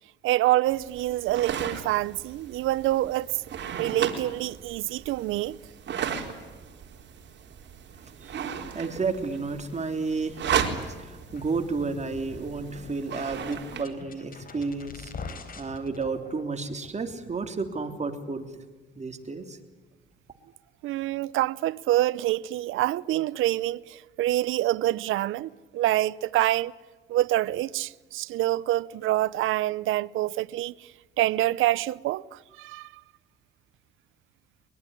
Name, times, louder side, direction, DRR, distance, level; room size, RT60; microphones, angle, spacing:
voice 1, 0.2-3.4 3.8-5.6 20.8-26.7 27.1-30.9 31.2-33.0, right 15 dB, 90° right, 0.7 m, -26 dB
sound 1, 0.7-13.8, right 8 dB, 65° right, 4.2 m, -35 dB
voice 2, 8.0-10.5 10.8-18.5 18.9-19.6, right 4 dB, 35° right, 3.4 m, -32 dB
sound 2, 11.3-18.1, left 4 dB, 45° left, 3.9 m, -44 dB
23.0 x 22.5 x 10.0 m
cardioid pair, 90°, 20 cm